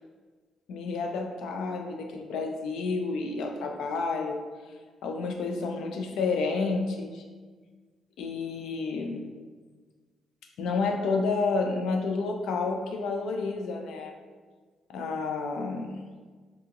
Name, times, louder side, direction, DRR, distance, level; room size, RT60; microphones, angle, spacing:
voice 1, 0.7-4.4 5.0-7.2 8.2-9.3 10.6-14.1 14.9-16.0, left 4 dB, 80° left, 3 dB, 0.4 m, -30 dB
3.6 x 2.7 x 2.8 m, 1.5 s
cardioid pair, 165°, 0 cm